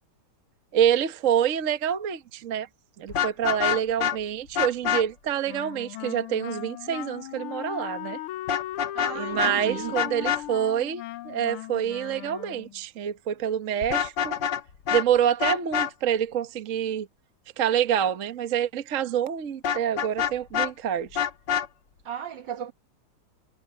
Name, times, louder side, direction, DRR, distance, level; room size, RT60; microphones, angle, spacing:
voice 1, 0.7-2.7 3.0-8.2 9.1-14.3 14.9-17.1 17.6-21.2, right 9 dB, 45° right, 1.3 m, -27 dB
Vehicle horn car horn honking, 3.1-4.2 4.5-5.0 8.5-9.1 9.4-9.5 9.9-10.4 13.8-14.6 14.9-15.0 15.4-15.9 19.6-20.7 21.1-21.7, left 9 dB, 60° left, 1.7 m, -25 dB
Wind instrument woodwind instrument, 5.5-12.8, left 14 dB, 90° left, 1.6 m, -37 dB
voice 2, 8.9-10.0 22.1-22.7, right 9 dB, 60° right, 1.8 m, -35 dB
omnidirectional pair, 2.3 m